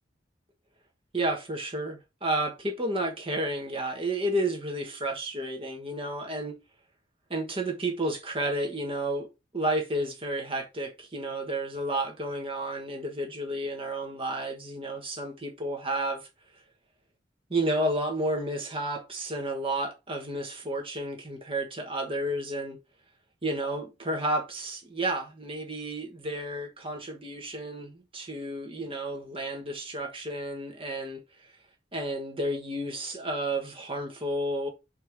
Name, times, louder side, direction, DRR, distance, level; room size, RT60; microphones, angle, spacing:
voice 1, 1.1-6.6 7.3-9.3 9.5-16.3 17.5-22.8 23.4-31.5 31.9-34.7, right 1 dB, 30° right, 1.4 m, -31 dB
6.2 x 4.4 x 4.8 m
head